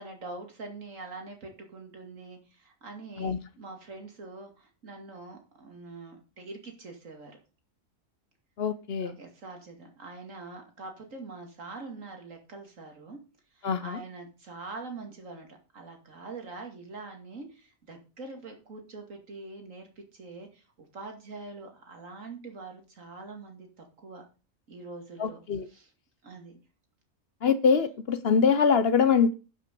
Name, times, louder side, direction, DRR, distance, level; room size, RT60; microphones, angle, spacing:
voice 1, 0.0-7.4 9.0-13.2 13.5-24.3 24.7-25.9 26.2-26.6, right 3 dB, 75° right, 3 dB, 2.7 m, -44 dB
voice 2, 8.6-9.1 13.6-14.0 25.2-25.7 27.4-29.3, left 6 dB, 55° left, 14 dB, 0.9 m, -24 dB
11.0 x 6.1 x 5.3 m, 0.33 s
omnidirectional pair, 1.3 m